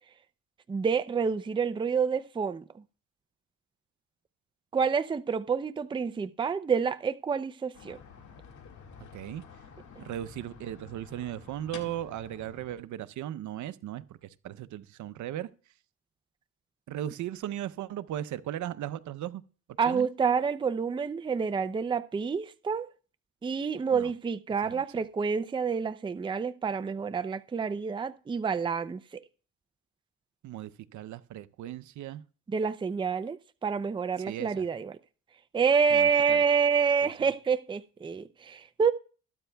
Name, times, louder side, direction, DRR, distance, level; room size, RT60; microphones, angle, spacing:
voice 1, 0.7-2.6 4.7-8.0 19.8-22.9 23.4-29.0 32.5-34.9 35.5-38.9, right 6 dB, 15° right, 0.4 m, -28 dB
sound 1, 7.7-12.8, left 6 dB, 70° left, 1.9 m, -50 dB
voice 2, 9.1-9.4 10.0-15.5 16.9-19.4 19.8-20.1 23.9-24.1 24.6-25.0 30.4-32.2 34.2-34.7 35.9-36.4 37.0-37.1, right 12 dB, 70° right, 0.7 m, -37 dB
21.0 x 9.0 x 2.3 m
cardioid pair, 90°, 30 cm